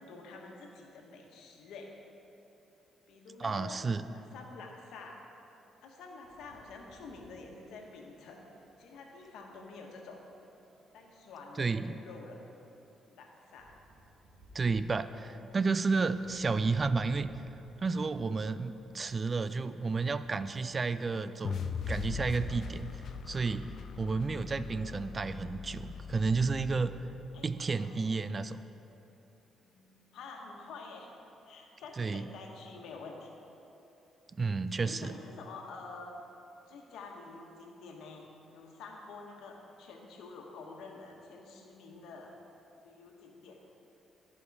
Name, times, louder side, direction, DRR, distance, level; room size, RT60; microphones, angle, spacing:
voice 1, 0.0-1.9 3.1-3.8 4.1-5.2 5.8-8.4 8.8-10.2 10.9-12.4 13.1-13.8 15.2-15.4 27.3-28.0 29.6-31.1 31.4-33.3 34.8-36.2 36.7-42.3 42.8-43.6, left 3 dB, 80° left, 1 dB, 1.2 m, -48 dB
voice 2, 3.4-4.0 11.6-12.0 14.5-17.3 17.8-23.7 24.0-27.0 27.4-28.6 32.0-32.2 34.4-35.2, right 4 dB, 35° right, 12 dB, 0.3 m, -31 dB
sound 1, 6.2-21.7, equal, 65° right, 1.8 m, -59 dB
sound 2, 21.4-27.6, left 6 dB, 60° left, 0.4 m, -40 dB
13.0 x 5.3 x 4.8 m, 3.0 s
cardioid pair, 90°, 0 cm